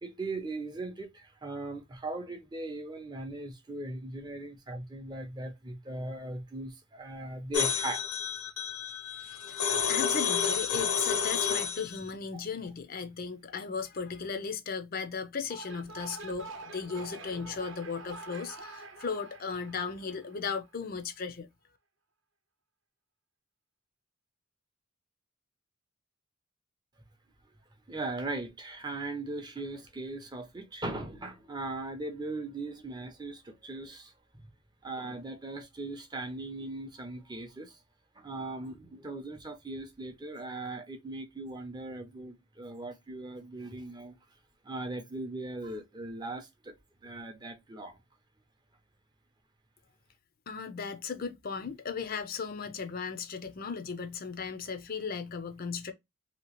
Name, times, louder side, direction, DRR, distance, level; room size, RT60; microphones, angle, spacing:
voice 1, 0.0-1.1 1.4-8.0 12.3-12.4 27.9-34.1 34.8-37.7 38.2-44.1 44.7-46.5 47.0-47.9, right 2 dB, 20° right, 0.5 m, -39 dB
sound 1, 7.5-12.0, left 6 dB, 90° left, 0.9 m, -30 dB
voice 2, 9.9-21.5 50.5-55.9, left 5 dB, 40° left, 0.5 m, -36 dB
sound 2, 15.4-20.7, right 3 dB, 55° right, 0.7 m, -46 dB
2.9 x 2.8 x 2.9 m
head